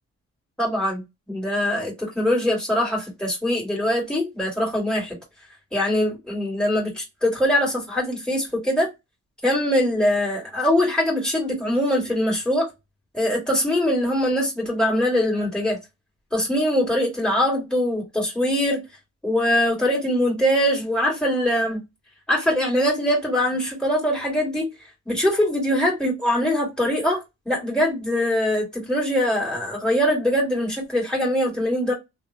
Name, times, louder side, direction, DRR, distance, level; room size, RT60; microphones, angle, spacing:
voice 1, 0.6-5.2 5.7-8.9 9.4-12.7 13.1-15.8 16.3-18.8 19.2-21.8 22.3-24.7 25.1-31.9, left 1 dB, ahead, 2.1 m, -22 dB
3.1 x 2.2 x 2.8 m
cardioid pair, 90°, 30 cm